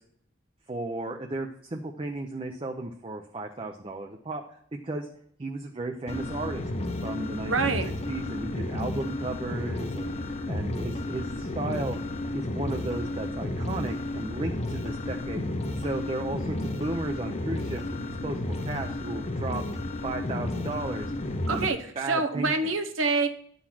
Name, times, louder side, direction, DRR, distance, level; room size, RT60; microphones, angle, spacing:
voice 1, 0.7-5.1 5.4-6.6 7.0-7.5 8.1-12.0 12.3-15.4 15.8-17.8 18.2-19.6 20.0-21.1 21.5-21.7 22.0-22.5, right 2 dB, 30° right, 4 dB, 0.6 m, -34 dB
sound 1, 6.1-21.7, left 1 dB, 35° left, 0.6 m, -32 dB
voice 2, 7.4-7.9 21.5-21.8 22.1-23.3, right 3 dB, 85° right, 7 dB, 0.9 m, -26 dB
9.9 x 3.9 x 6.0 m, 0.64 s
head